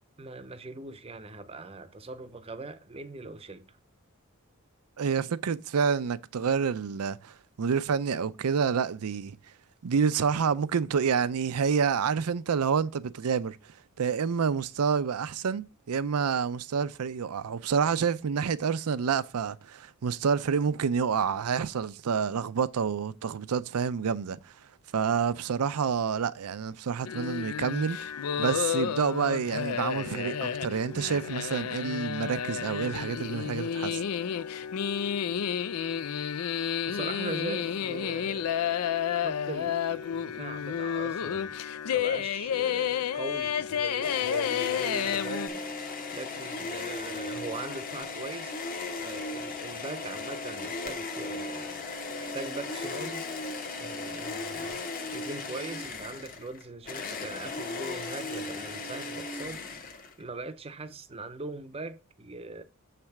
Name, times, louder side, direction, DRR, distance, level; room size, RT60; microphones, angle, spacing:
voice 1, 0.2-3.8 36.9-45.6 46.1-48.6 49.0-51.8 52.2-53.3 53.8-54.8 55.1-59.6 60.2-62.6, right 3 dB, 25° right, 0.6 m, -41 dB
voice 2, 5.0-9.4 9.8-13.6 14.0-24.5 24.9-28.0 28.4-34.0, right 6 dB, 85° right, 0.5 m, -28 dB
sound 1, 27.0-45.5, left 8 dB, 85° left, 0.4 m, -31 dB
sound 2, 44.0-60.3, left 3 dB, 40° left, 1.0 m, -36 dB
7.3 x 3.3 x 5.8 m
head